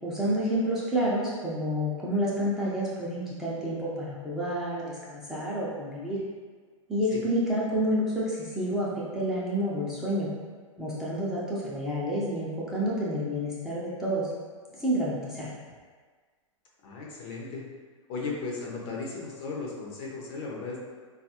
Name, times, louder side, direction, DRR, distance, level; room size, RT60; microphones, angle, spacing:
voice 1, 0.0-6.2 6.9-8.9 9.1-10.3 10.8-14.3 14.8-15.5, equal, 5° right, -9 dB, 0.6 m, -29 dB
voice 2, 16.8-17.7 18.1-20.8, left 4 dB, 45° left, -3 dB, 0.8 m, -36 dB
3.9 x 2.4 x 2.8 m, 1.5 s
figure-of-eight pair, 105°, 17 cm